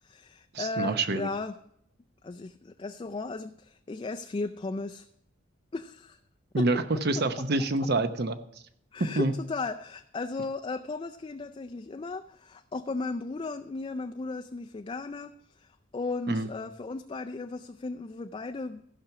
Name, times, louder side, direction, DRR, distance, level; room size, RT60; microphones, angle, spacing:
voice 1, 0.0-1.6 2.2-5.1 5.7-6.2 6.6-6.7 8.9-18.8, left 3 dB, 25° left, 6 dB, 0.4 m, -36 dB
voice 2, 0.5-1.3 6.5-8.4 9.0-9.3 16.3-16.5, right 2 dB, 55° right, 10 dB, 0.8 m, -27 dB
15.0 x 5.9 x 5.9 m, 0.72 s
head